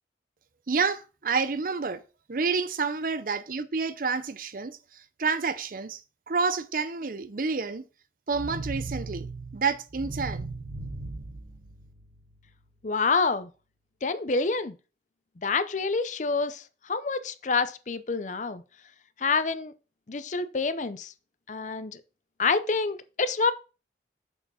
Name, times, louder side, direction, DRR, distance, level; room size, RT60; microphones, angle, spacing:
voice 1, 0.7-2.0 2.3-4.8 5.2-6.0 6.3-7.8 8.3-9.3 9.5-10.5, right 4 dB, 50° right, 0.6 m, -29 dB
sound 1, 8.3-12.3, right 3 dB, 75° right, 1.2 m, -37 dB
voice 2, 12.8-13.5 14.0-14.7 15.4-18.6 19.2-19.7 20.1-21.1 21.5-22.0 22.4-23.5, left 4 dB, 40° left, 0.5 m, -27 dB
6.8 x 4.8 x 5.5 m
head